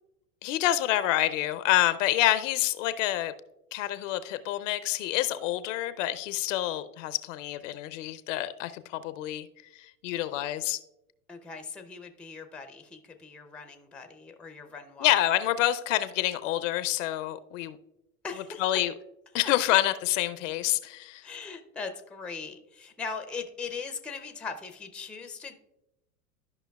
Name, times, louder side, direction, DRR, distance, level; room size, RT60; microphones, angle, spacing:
voice 1, 0.4-3.3 3.7-9.5 9.8-10.8 15.0-17.8 18.6-18.9 19.3-21.2, left 14 dB, 55° left, 13 dB, 0.6 m, -27 dB
voice 2, 11.3-15.1 18.2-18.8 19.4-19.5 21.2-25.6, left 5 dB, ahead, 7 dB, 0.5 m, -40 dB
13.0 x 5.5 x 2.3 m, 0.92 s
hypercardioid pair, 95°, 46 cm